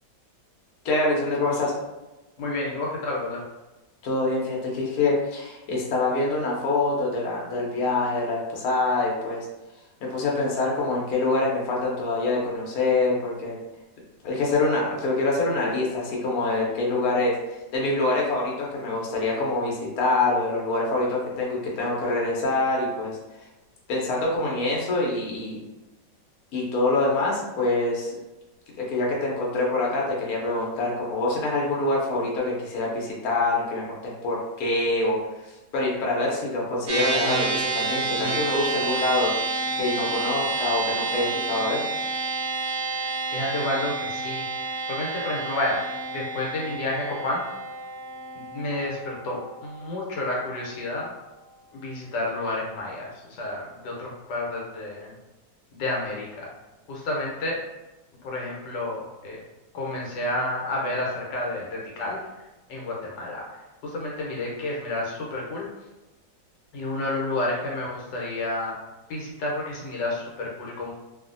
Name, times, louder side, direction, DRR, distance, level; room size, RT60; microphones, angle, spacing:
voice 1, 0.8-1.7 4.0-9.5 10.0-13.6 14.2-17.3 17.7-23.2 23.9-25.6 26.5-28.2 28.8-35.2 35.7-39.3 39.8-41.8, left 2 dB, 65° left, -3 dB, 1.1 m, -25 dB
voice 2, 2.4-3.4 42.9-45.8 46.1-47.5 48.5-51.1 51.7-55.1 55.7-56.5 56.9-57.6 58.2-59.4 59.7-63.4 63.8-65.7 66.7-68.8 69.1-70.9, left 2 dB, 80° left, -3 dB, 1.4 m, -30 dB
sound 1, 36.9-50.4, right 3 dB, 75° right, 0.6 m, -29 dB
2.7 x 2.5 x 2.5 m, 1.1 s
omnidirectional pair, 1.9 m